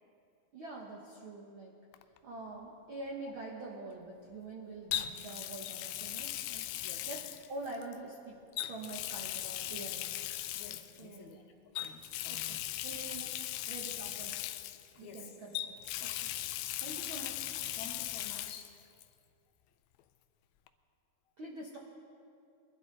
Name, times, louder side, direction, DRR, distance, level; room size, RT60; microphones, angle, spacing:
voice 1, 0.5-1.7 2.2-8.4 8.7-10.0 11.0-11.4 12.3-12.6 12.8-14.4 15.0-15.7 16.0-17.5 21.4-21.8, right 2 dB, 70° right, -2 dB, 1.2 m, -46 dB
Water tap faucet, 1.9-2.2 4.9-8.0 8.5-11.0 11.8-15.2 15.5-18.7 19.0-19.1 20.7-20.8, left 13 dB, 85° left, 2.4 m, -38 dB
voice 2, 10.5-12.6 13.0-13.1 15.0-15.3 17.8-18.7, left 6 dB, 60° left, 2 dB, 2.3 m, -51 dB
22.5 x 12.0 x 4.1 m, 2.5 s
omnidirectional pair, 4.3 m